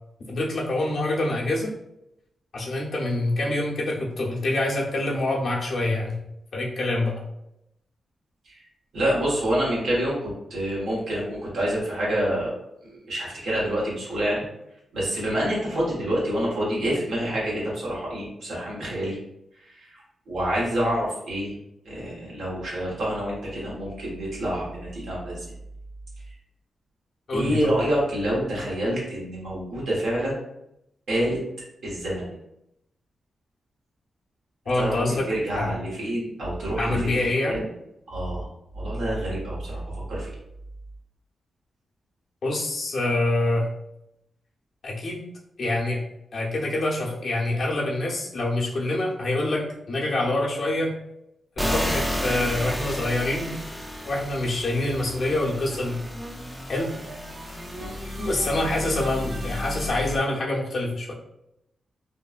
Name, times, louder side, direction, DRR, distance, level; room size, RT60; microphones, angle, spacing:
voice 1, 0.3-1.7 2.5-6.2 6.5-7.2 27.3-27.7 34.7-35.2 35.5-35.8 36.8-37.6 42.4-43.7 44.8-45.2 45.6-46.0 46.3-50.9 51.6-53.5 54.1-56.0 56.7-56.9 58.2-61.1, left 2 dB, 65° left, -3 dB, 0.8 m, -26 dB
voice 2, 8.9-12.5 12.8-14.5 14.9-19.2 19.5-21.6 21.8-25.4 27.3-30.4 31.1-31.4 31.8-32.4 34.7-37.1 37.4-37.6 38.1-38.5 38.7-39.8 40.1-40.3 57.8-58.0, right 1 dB, 80° right, -5 dB, 1.2 m, -27 dB
sound 1, 51.6-60.2, left 1 dB, ahead, 0.5 m, -32 dB
sound 2, 53.8-59.9, right 1 dB, 55° right, 0.8 m, -41 dB
3.3 x 2.1 x 2.4 m, 0.82 s
cardioid pair, 70°, 0 cm